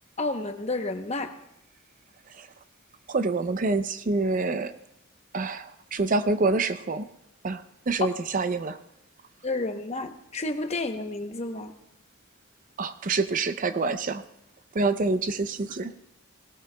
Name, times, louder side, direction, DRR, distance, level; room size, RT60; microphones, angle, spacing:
voice 1, 0.2-1.3 9.4-11.7, left 2 dB, 30° left, 7 dB, 0.8 m, -31 dB
voice 2, 3.1-4.7 5.3-7.1 7.4-8.8 12.8-14.2 14.7-15.9, right 3 dB, 40° right, 11 dB, 0.5 m, -26 dB
19.0 x 18.0 x 2.3 m, 0.81 s
head